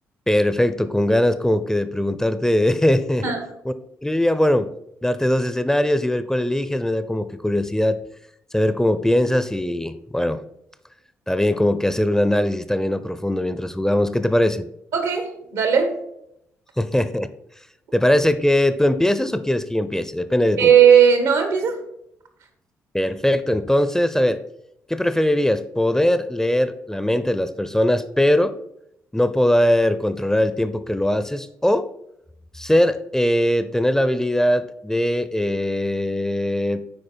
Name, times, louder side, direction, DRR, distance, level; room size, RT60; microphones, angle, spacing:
voice 1, 0.3-3.2 3.7-3.8 4.0-4.7 5.0-8.0 8.5-10.4 11.3-14.7 16.8-17.3 17.9-20.7 22.9-24.4 24.9-28.5 29.1-31.9 32.5-36.8, left 1 dB, 5° left, 13 dB, 0.6 m, -20 dB
voice 2, 14.9-15.9 20.6-21.8, right 8 dB, 80° right, 6 dB, 1.5 m, -16 dB
8.7 x 4.7 x 4.4 m, 0.79 s
hypercardioid pair, 45°, 7 cm